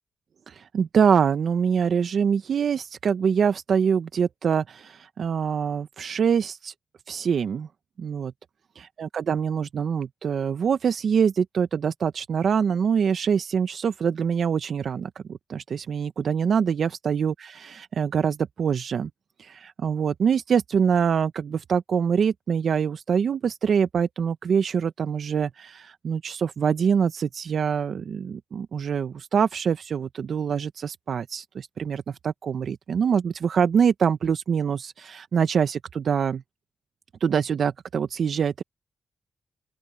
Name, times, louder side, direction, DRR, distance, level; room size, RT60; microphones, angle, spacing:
voice 1, 0.5-6.7 7.1-7.7 8.0-8.3 8.8-15.1 15.5-19.1 19.4-36.4 37.2-38.6, right 7 dB, 70° right, 1.1 m, -24 dB
open air
supercardioid pair, 45°, 0 cm